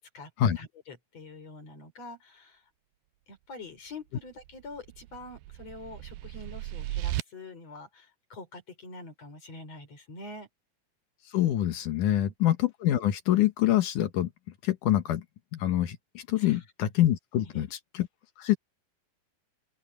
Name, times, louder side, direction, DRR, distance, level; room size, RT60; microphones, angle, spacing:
voice 1, 0.0-0.3 0.6-2.7 3.3-10.5 16.4-16.6 17.4-17.7, left 2 dB, 45° left, 5.9 m, -45 dB
sound 1, 4.4-7.2, right 15 dB, 85° right, 2.4 m, -36 dB
voice 2, 11.3-14.3 14.6-15.2 15.5-17.7 17.9-18.1 18.4-18.6, left 12 dB, 70° left, 2.6 m, -25 dB
open air
omnidirectional pair, 4.0 m